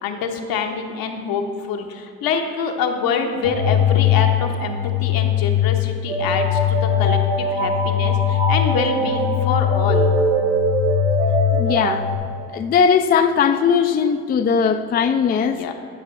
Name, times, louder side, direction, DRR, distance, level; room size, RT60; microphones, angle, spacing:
voice 1, 0.0-10.1 15.5-15.7, left 5 dB, 65° left, 4 dB, 0.9 m, -26 dB
sound 1, 3.4-12.2, left 5 dB, 80° right, 1.2 m, -20 dB
voice 2, 11.5-12.0 12.5-15.7, left 6 dB, 25° left, 8 dB, 0.4 m, -19 dB
12.5 x 5.1 x 3.2 m, 2.3 s
hypercardioid pair, 55°, 38 cm